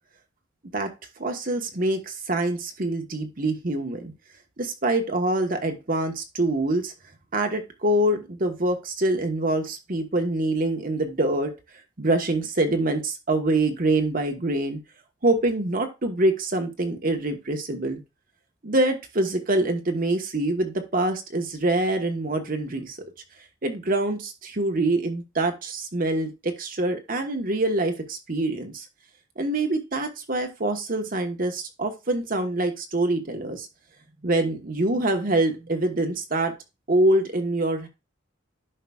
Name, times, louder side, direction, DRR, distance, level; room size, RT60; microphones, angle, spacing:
voice 1, 1.2-4.1 4.6-6.9 7.3-11.5 12.0-14.8 15.2-18.0 18.6-23.0 23.6-28.8 29.4-33.7 34.2-36.5 36.9-37.9, right 2 dB, 50° right, 5 dB, 1.3 m, -25 dB
11.0 x 5.0 x 2.4 m, 0.26 s
head